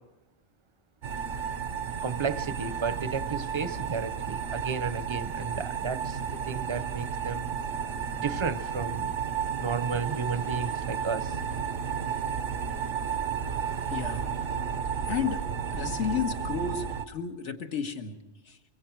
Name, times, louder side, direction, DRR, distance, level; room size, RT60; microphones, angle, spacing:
sound 1, 1.0-17.0, right 7 dB, 85° right, 1.3 m, -32 dB
voice 1, 2.0-7.5 8.1-9.1 9.6-11.3, right 5 dB, 30° right, 13 dB, 0.7 m, -33 dB
voice 2, 13.9-14.3 15.0-15.4 15.7-18.1 18.4-18.6, left 7 dB, 75° left, 5 dB, 1.8 m, -32 dB
24.5 x 23.5 x 4.6 m, 1.0 s
omnidirectional pair, 1.2 m